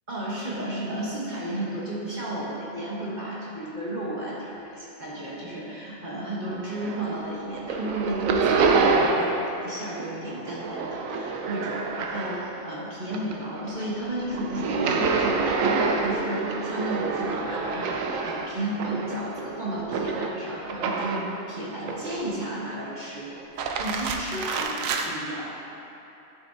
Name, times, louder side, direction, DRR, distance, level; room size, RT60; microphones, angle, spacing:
voice 1, 0.1-23.3 23.8-25.6, right 1 dB, 35° right, -6 dB, 1.2 m, -33 dB
sound 1, 6.5-7.2 7.5-9.5 9.8-12.7 13.0-21.4 21.9-22.5 23.4-25.1, right 4 dB, 85° right, 1.0 m, -27 dB
11.0 x 6.9 x 2.7 m, 2.9 s
omnidirectional pair, 1.3 m